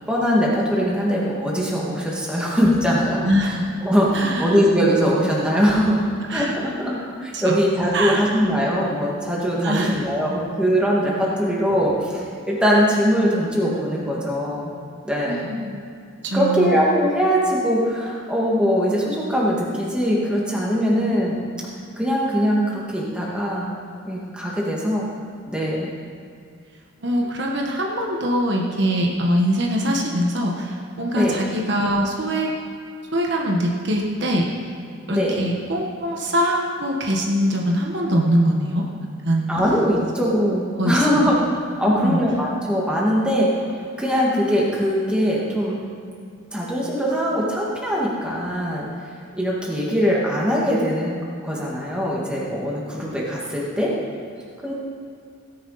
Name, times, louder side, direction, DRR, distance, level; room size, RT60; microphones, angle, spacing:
voice 1, 0.1-3.6 3.8-6.0 6.3-14.7 15.0-15.5 16.3-21.4 22.0-23.7 24.0-25.1 25.5-25.9 31.1-31.4 35.1-35.4 39.5-41.4 41.8-43.5 44.0-45.8 46.5-48.9 49.4-51.2 51.4-53.9 54.6-54.7, equal, 5° right, -5 dB, 2.1 m, -21 dB
voice 2, 3.2-3.6 4.1-4.6 6.3-6.5 7.3-7.5 7.9-8.3 9.6-10.1 15.2-15.8 16.2-16.7 27.0-32.5 33.1-34.5 35.1-38.8 39.2-39.5 40.8-41.3 41.8-42.2, equal, 55° right, -1 dB, 1.4 m, -23 dB
17.0 x 10.5 x 4.2 m, 2.4 s
head